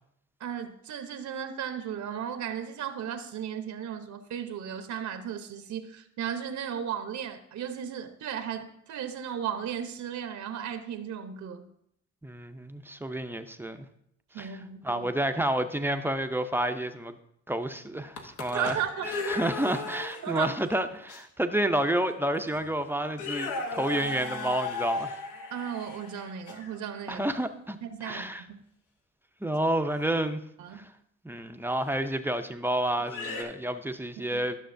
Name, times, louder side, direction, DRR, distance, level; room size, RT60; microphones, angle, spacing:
voice 1, 0.4-11.7 14.3-15.1 18.5-19.2 20.2-20.5 25.5-27.3 27.8-28.6 30.6-30.9 34.2-34.4, right 8 dB, 70° right, 8 dB, 0.8 m, -35 dB
voice 2, 12.2-13.9 14.4-14.5 14.8-17.2 17.5-18.8 19.3-25.2 27.1-27.8 28.0-28.4 29.4-30.4 30.7-30.9 31.2-34.6, right 1 dB, 5° right, 7 dB, 0.5 m, -30 dB
sound 1, 18.0-20.5 21.1-21.2 22.1-22.2 22.5-22.7 23.1-26.8 30.0-30.1 31.9-32.0 33.0-33.4, left 3 dB, 80° left, 1.2 m, -36 dB
12.5 x 6.4 x 2.6 m, 0.72 s
cardioid pair, 90°, 30 cm